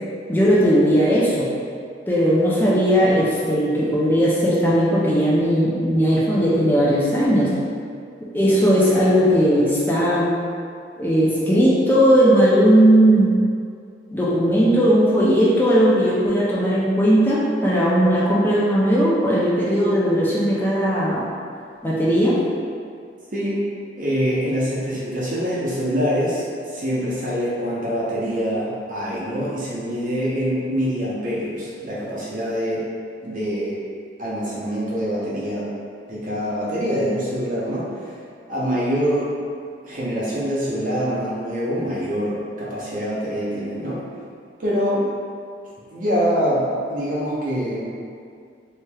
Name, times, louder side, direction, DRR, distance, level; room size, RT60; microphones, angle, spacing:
voice 1, 0.3-1.5 2.1-7.5 8.3-10.3 11.0-13.3 14.1-21.3 21.8-22.4, equal, 10° left, -7 dB, 0.4 m, -17 dB
voice 2, 23.3-23.6 24.0-26.4 26.7-32.8 33.2-33.8 34.2-35.7 36.1-38.2 38.5-39.3 39.8-44.0 44.6-45.1 45.9-47.9, equal, 50° right, -7 dB, 0.7 m, -24 dB
3.2 x 2.8 x 2.2 m, 2.3 s
head